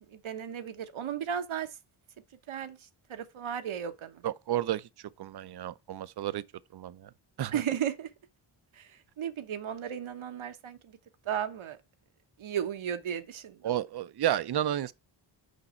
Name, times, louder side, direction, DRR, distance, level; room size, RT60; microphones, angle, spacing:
voice 1, 0.1-1.7 2.5-2.8 3.1-4.2 7.5-8.1 8.7-11.0 11.2-11.8 12.4-13.6, right 9 dB, 75° right, 1.2 m, -35 dB
voice 2, 4.2-4.8 5.2-6.4 6.7-7.1 7.4-7.6 13.6-14.9, right 12 dB, 50° right, 0.6 m, -31 dB
6.6 x 5.4 x 4.3 m
cardioid pair, 85°, 49 cm